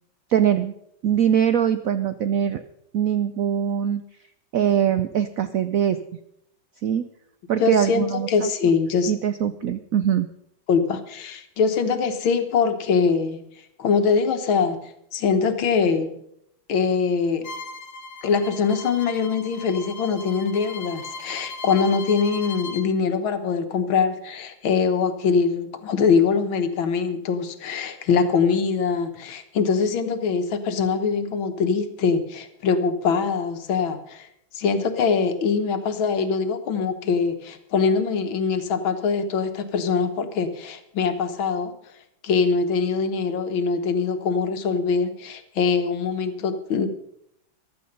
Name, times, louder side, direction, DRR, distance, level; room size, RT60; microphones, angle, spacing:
voice 1, 0.3-0.7 1.0-2.6 2.9-4.0 4.5-6.0 6.8-7.1 7.5-8.5 9.1-10.3, right 9 dB, 85° right, 11 dB, 0.7 m, -22 dB
voice 2, 7.6-9.1 10.7-13.4 13.8-16.2 16.7-17.5 18.2-34.3 34.5-41.7 42.2-46.9, left 5 dB, 80° left, 9 dB, 2.0 m, -23 dB
Bowed string instrument, 17.4-22.9, left 3 dB, 50° left, 1.8 m, -38 dB
15.0 x 11.5 x 5.4 m, 0.75 s
omnidirectional pair, 2.2 m